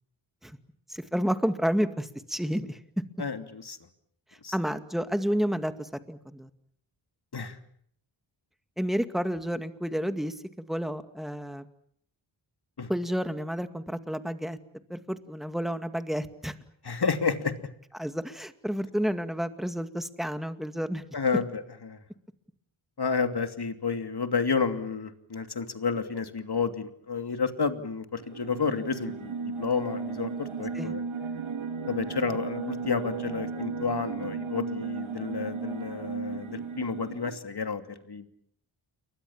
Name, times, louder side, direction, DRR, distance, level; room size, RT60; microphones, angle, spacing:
voice 1, 0.9-2.8 4.5-6.5 8.8-11.7 12.9-14.6 14.9-16.5 17.9-21.0 30.7-30.9, equal, ahead, 9 dB, 2.1 m, -30 dB
voice 2, 3.2-3.8 4.4-4.5 7.3-7.6 12.8-12.9 16.8-17.5 21.1-22.0 23.0-31.0 31.9-37.8 38.1-38.3, left 5 dB, 55° left, 8 dB, 2.9 m, -30 dB
sound 1, 28.2-37.4, right 5 dB, 80° right, 2.5 m, -35 dB
29.5 x 23.5 x 7.4 m, 0.66 s
wide cardioid pair, 80°, 48 cm